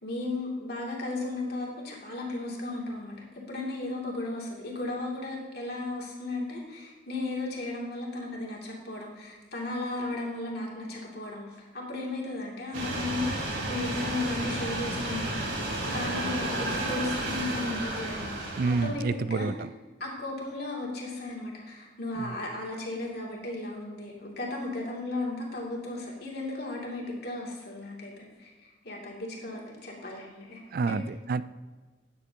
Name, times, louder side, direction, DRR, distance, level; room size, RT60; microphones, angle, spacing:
voice 1, 0.0-11.4 11.7-19.5 20.0-31.0, left 2 dB, 60° left, -2 dB, 2.6 m, -35 dB
sound 1, 12.7-18.9, right 1 dB, 85° right, 2.8 m, -32 dB
voice 2, 18.6-19.7 22.2-22.4 30.7-31.4, right 4 dB, 50° right, 15 dB, 0.3 m, -29 dB
13.0 x 9.7 x 2.9 m, 1.3 s
head